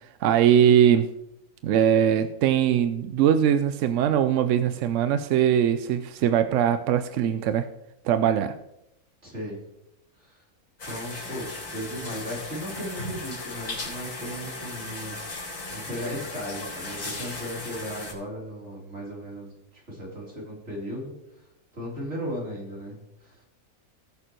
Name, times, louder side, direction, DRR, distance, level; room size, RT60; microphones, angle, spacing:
voice 1, 0.2-1.1 1.6-7.7 8.0-8.6, right 9 dB, 65° right, 10 dB, 0.8 m, -21 dB
voice 2, 9.2-9.6 10.2-10.4 10.8-21.1 21.7-23.4, equal, 50° right, -4 dB, 3.9 m, -36 dB
sound 1, 10.8-18.1, left 2 dB, 75° left, 4.4 m, -36 dB
18.5 x 6.6 x 3.0 m, 0.85 s
omnidirectional pair, 1.6 m